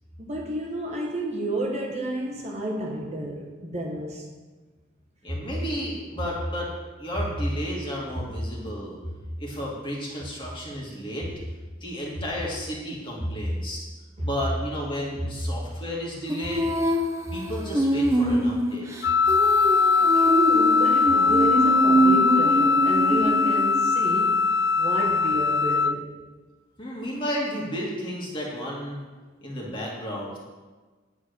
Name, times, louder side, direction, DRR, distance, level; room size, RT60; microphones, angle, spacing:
voice 1, 0.2-4.3 5.3-5.5 13.2-13.4 14.2-14.3 15.2-15.3 20.0-24.5 24.8-26.1, right 1 dB, 35° right, 1.1 m, -31 dB
voice 2, 5.2-6.7 7.0-9.0 9.4-11.3 11.8-13.8 14.2-16.7 17.3-18.9 26.8-29.0 29.4-30.4, equal, 25° left, 2.1 m, -32 dB
Female singing, 16.3-24.0, right 1 dB, 15° right, 0.7 m, -24 dB
Wind instrument woodwind instrument, 19.0-26.0, left 4 dB, 65° left, 0.3 m, -21 dB
10.0 x 4.1 x 6.6 m
head